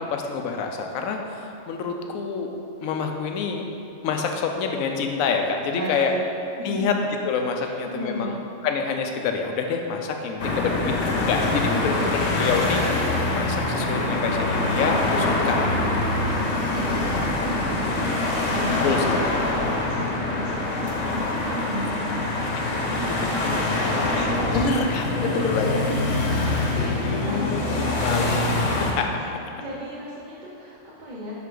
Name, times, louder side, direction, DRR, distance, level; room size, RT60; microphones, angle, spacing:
voice 1, 0.0-2.6 2.8-3.7 4.0-6.1 6.6-6.9 7.2-8.3 8.6-16.2 18.8-19.4 22.4-22.5 23.0-23.2 24.1-25.8 26.8-28.5 28.9-29.4, left 5 dB, 85° left, 3 dB, 1.0 m, -27 dB
voice 2, 5.7-6.2 6.6-6.8 7.5-8.3 11.6-12.1 16.3-19.1 19.8-20.0 20.2-24.7 25.1-27.8 29.5-31.3, right 1 dB, 40° right, -7 dB, 0.8 m, -34 dB
sound 1, 10.4-28.9, left 2 dB, 65° left, 1.1 m, -24 dB
5.9 x 5.5 x 3.8 m, 2.7 s
omnidirectional pair, 1.4 m